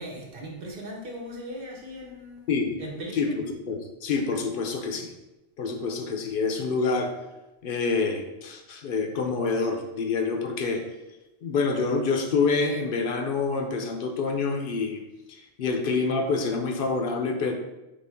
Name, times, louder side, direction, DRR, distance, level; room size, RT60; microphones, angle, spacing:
voice 1, 0.0-2.5 2.8-3.3, equal, 60° right, -1 dB, 1.0 m, -38 dB
voice 2, 3.1-5.1 5.6-7.1 7.6-10.8 11.4-15.0 15.3-17.5, left 4 dB, 65° left, 4 dB, 0.7 m, -27 dB
4.2 x 3.2 x 3.4 m, 1.0 s
omnidirectional pair, 1.1 m